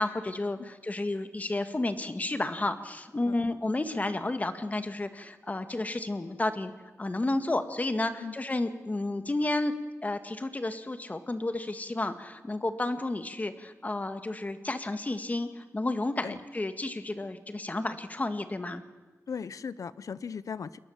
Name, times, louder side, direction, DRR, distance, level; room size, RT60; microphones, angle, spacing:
voice 1, 0.0-6.7 7.0-9.7 10.0-18.8, left 2 dB, 30° left, 9 dB, 1.7 m, -31 dB
voice 2, 19.3-20.8, left 6 dB, 80° left, 17 dB, 0.8 m, -38 dB
29.0 x 21.5 x 7.3 m, 1.2 s
wide cardioid pair, 120°, 6 cm